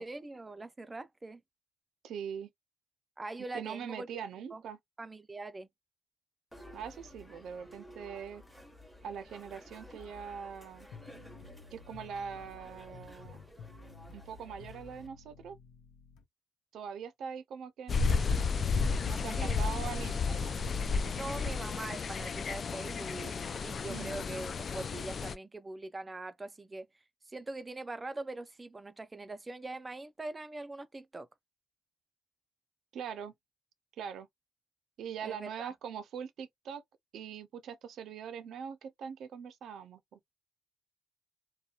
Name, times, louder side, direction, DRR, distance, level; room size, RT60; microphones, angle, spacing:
voice 1, 0.0-1.4 3.2-4.1 4.5-4.6 5.0-5.7 19.4-19.6 21.1-26.9 27.3-31.3 35.2-35.7, right 2 dB, 20° right, 0.4 m, -42 dB
voice 2, 2.0-2.5 3.5-4.8 6.7-8.4 9.0-10.9 11.7-13.4 14.1-15.6 16.7-18.4 19.0-20.6 23.9-24.2 32.9-33.3 34.0-34.3 35.0-36.8 37.1-40.2, right 7 dB, 70° right, 0.5 m, -42 dB
sound 1, 6.5-15.1, left 1 dB, ahead, 1.0 m, -53 dB
sound 2, 10.9-16.2, left 4 dB, 90° left, 0.7 m, -53 dB
sound 3, 17.9-25.3, left 5 dB, 45° left, 0.4 m, -32 dB
2.8 x 2.2 x 2.3 m
cardioid pair, 90°, 0 cm